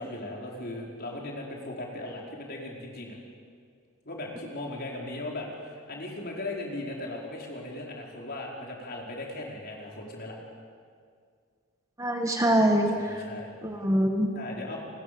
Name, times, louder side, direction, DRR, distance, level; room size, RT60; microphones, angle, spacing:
voice 1, 0.0-3.2 4.0-10.4 12.9-13.5 14.3-14.8, left 2 dB, 45° left, -2 dB, 4.9 m, -38 dB
voice 2, 12.0-13.2 13.6-14.3, right 1 dB, 15° right, 3 dB, 1.7 m, -24 dB
29.0 x 21.0 x 7.0 m, 2.1 s
head